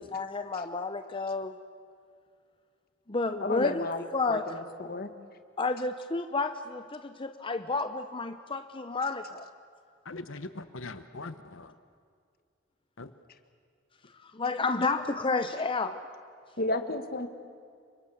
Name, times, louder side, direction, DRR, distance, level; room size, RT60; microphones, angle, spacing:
voice 1, 0.0-1.5 3.1-3.9 4.1-4.4 5.6-9.5 14.2-16.0, left 3 dB, 25° left, 8 dB, 0.8 m, -31 dB
voice 2, 3.4-5.1 16.6-17.3, left 2 dB, 50° left, 8 dB, 1.7 m, -33 dB
voice 3, 10.1-11.7 13.0-13.1, left 3 dB, 70° left, 11 dB, 1.1 m, -41 dB
30.0 x 25.0 x 7.2 m, 2.2 s
head